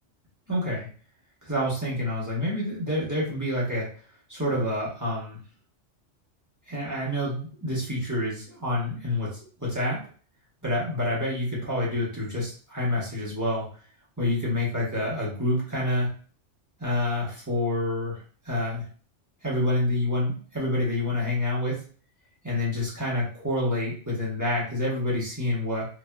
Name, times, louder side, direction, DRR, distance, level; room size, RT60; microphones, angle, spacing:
voice 1, 0.5-0.9 1.4-3.9 4.3-5.4 6.7-10.0 10.6-13.6 14.2-16.1 16.8-18.8 19.4-21.8 22.4-25.9, left 1 dB, 15° right, -7 dB, 1.2 m, -28 dB
3.0 x 2.7 x 2.3 m, 0.41 s
omnidirectional pair, 1.3 m